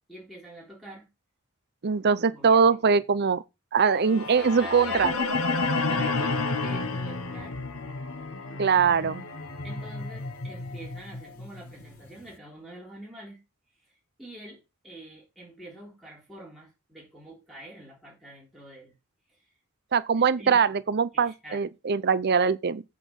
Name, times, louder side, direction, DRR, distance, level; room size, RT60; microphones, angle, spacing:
voice 1, 0.1-1.1 2.3-2.6 4.1-5.3 5.9-7.6 9.6-13.4 14.2-18.9 19.3-19.4 20.2-20.6 21.1-21.6, right 1 dB, ahead, 3.7 m, -45 dB
voice 2, 1.8-3.4 3.7-5.1 8.6-9.3 19.9-22.8, right 5 dB, 50° right, 0.6 m, -22 dB
sound 1, 4.0-12.1, left 3 dB, 75° left, 1.5 m, -31 dB
8.3 x 5.6 x 7.0 m
head